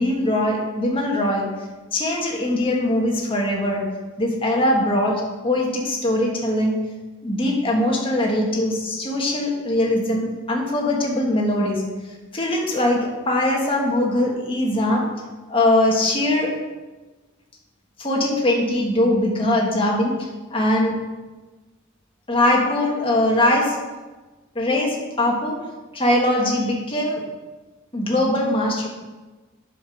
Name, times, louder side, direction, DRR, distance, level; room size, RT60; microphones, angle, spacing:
voice 1, 0.0-1.5 1.9-3.8 4.2-6.8 7.2-11.8 12.3-15.0 15.5-16.5 18.0-21.0 22.3-23.8 24.5-25.6 25.9-27.2 27.9-28.9, left 1 dB, 25° left, -1 dB, 1.6 m, -21 dB
8.6 x 5.2 x 6.3 m, 1.2 s
head